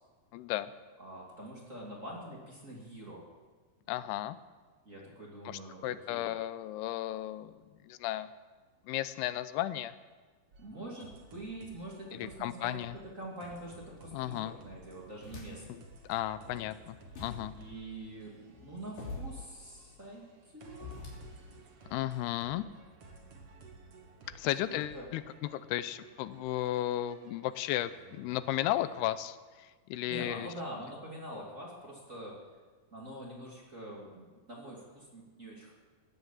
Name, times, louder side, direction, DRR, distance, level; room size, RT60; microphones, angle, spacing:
voice 1, 0.3-0.7 3.9-4.4 5.5-8.3 8.9-9.9 12.1-13.0 14.1-14.6 15.7-15.8 16.1-17.5 21.9-22.6 24.4-25.2 25.5-30.5, left 14 dB, 90° left, 14 dB, 2.7 m, -34 dB
voice 2, 1.0-3.2 4.8-6.4 10.6-15.8 16.4-16.7 17.5-21.0 24.6-25.1 30.1-32.4 32.9-35.7, right 1 dB, 25° right, -4 dB, 2.4 m, -45 dB
sound 1, 10.5-29.1, right 3 dB, 50° right, 2.0 m, -56 dB
sound 2, 14.4-15.9 16.3-21.6, left 2 dB, 55° left, 4.6 m, -47 dB
16.0 x 10.5 x 7.3 m, 1.4 s
omnidirectional pair, 4.5 m